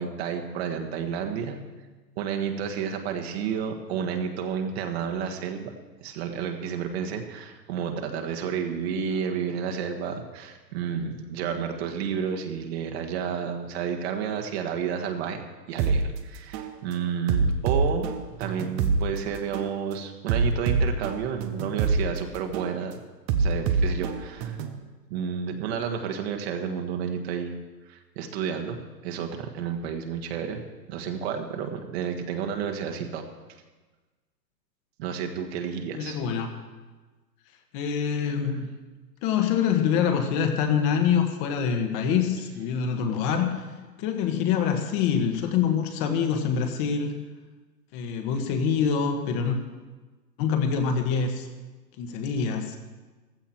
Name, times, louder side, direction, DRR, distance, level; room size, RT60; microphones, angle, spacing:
voice 1, 0.0-1.6 2.2-5.7 6.0-15.4 15.7-18.1 18.4-23.0 23.4-24.6 25.1-27.5 27.9-28.8 29.0-30.6 30.9-33.2 35.0-36.2, right 7 dB, 40° right, 4 dB, 1.6 m, -31 dB
sound 1, 15.8-16.0 16.5-16.7 17.3-19.0 19.5-19.7 20.3-22.0 22.5-22.7 23.3-24.8, right 5 dB, 20° right, 0.7 m, -25 dB
voice 2, 35.9-36.6 37.7-38.7 39.2-43.6 44.0-47.1 47.9-49.6 50.4-51.5 52.0-52.8, left 7 dB, 30° left, 5 dB, 1.5 m, -25 dB
15.5 x 13.0 x 4.5 m, 1.3 s
hypercardioid pair, 135°, 50 cm